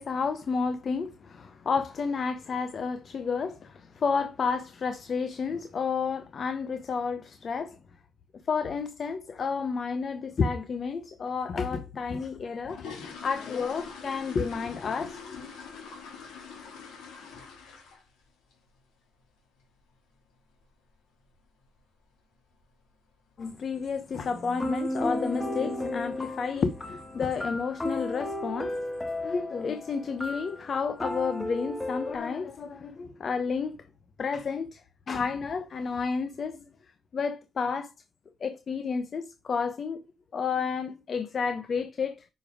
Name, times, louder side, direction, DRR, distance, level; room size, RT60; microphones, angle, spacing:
voice 1, 0.0-7.8 8.5-15.5 23.4-28.8 29.2-33.7 34.2-34.8 35.1-36.6 37.1-37.9 38.4-40.0 40.3-42.3, left 5 dB, 55° left, 0.9 m, -31 dB
sound 1, 12.3-18.2 18.5-18.8 19.1-19.2 19.6-19.7 20.1-20.3 20.6-20.7 21.3-21.4 21.6-21.8 22.3-22.6 22.9-23.0 23.4-23.6 23.9-24.0 24.4-24.5 25.2-25.5 25.8-26.1 26.5-26.6 27.0-27.1 27.9-28.0 28.4-28.9 29.4-29.5, left 5 dB, 85° left, 2.8 m, -44 dB
sound 2, 24.3-32.2, left 1 dB, 15° left, 2.1 m, -34 dB
9.7 x 5.4 x 5.0 m
supercardioid pair, 65°, 0 cm